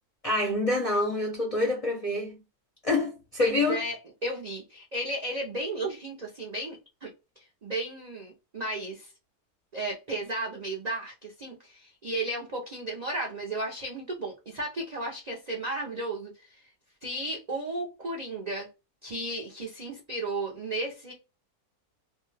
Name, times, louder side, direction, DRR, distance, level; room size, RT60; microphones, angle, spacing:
voice 1, 0.2-2.4 2.8-3.8, left 2 dB, 40° left, 0.5 m, -26 dB
voice 2, 3.4-7.1 7.6-9.1 9.7-16.6 17.0-18.7 19.0-21.1, right 1 dB, 55° right, 0.4 m, -34 dB
2.6 x 2.2 x 3.2 m
omnidirectional pair, 1.6 m